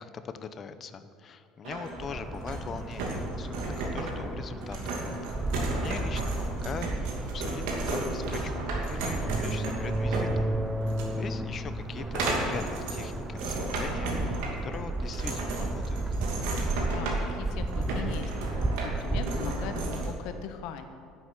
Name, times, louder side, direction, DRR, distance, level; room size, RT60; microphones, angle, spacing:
voice 1, 0.0-5.4 5.8-6.9 7.2-10.5 11.1-16.0, left 6 dB, 25° left, 11 dB, 0.7 m, -41 dB
sound 1, 1.6-20.1, right 2 dB, 75° right, 2.6 m, -34 dB
sound 2, 2.0-20.1, right 2 dB, 10° right, 0.5 m, -33 dB
voice 2, 16.9-20.9, left 8 dB, 60° left, 7 dB, 1.2 m, -40 dB
10.5 x 8.2 x 9.4 m, 2.3 s
cardioid pair, 160°, 0 cm